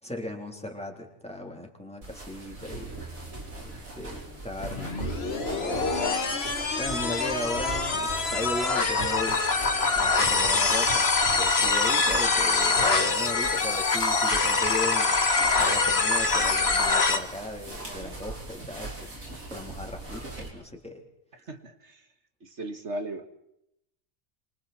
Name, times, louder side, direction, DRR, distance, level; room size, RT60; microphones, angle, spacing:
voice 1, 0.0-3.0 3.6-5.1 5.5-6.0 6.8-9.4 9.9-11.1 11.4-15.2 15.6-19.2 19.5-21.0, left 1 dB, 5° left, 1 dB, 3.6 m, -36 dB
sound 1, 2.0-20.5, right 2 dB, 75° right, 5.2 m, -40 dB
sound 2, 4.6-17.2, left 4 dB, 45° left, 1.9 m, -24 dB
voice 2, 21.3-22.1 22.4-23.3, right 1 dB, 55° right, 7 dB, 2.2 m, -37 dB
27.5 x 25.0 x 4.4 m, 0.78 s
omnidirectional pair, 1.5 m